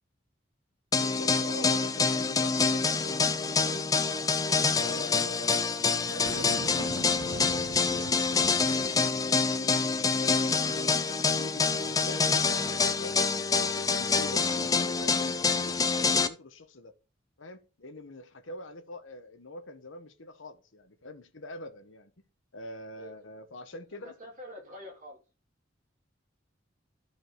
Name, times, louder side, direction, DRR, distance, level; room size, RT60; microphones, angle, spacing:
voice 1, 0.9-3.8 4.8-5.6 6.1-6.9 7.4-8.9 9.5-13.2 13.6-16.9 17.4-22.1 22.5-24.1, left 2 dB, 75° left, 1.1 m, -44 dB
sound 1, 0.9-16.3, left 4 dB, 20° left, 0.4 m, -26 dB
Boom, 6.3-9.6, right 4 dB, 65° right, 0.5 m, -41 dB
voice 2, 23.0-23.3 24.0-25.2, left 1 dB, 40° right, 2.8 m, -48 dB
13.5 x 5.0 x 3.0 m
head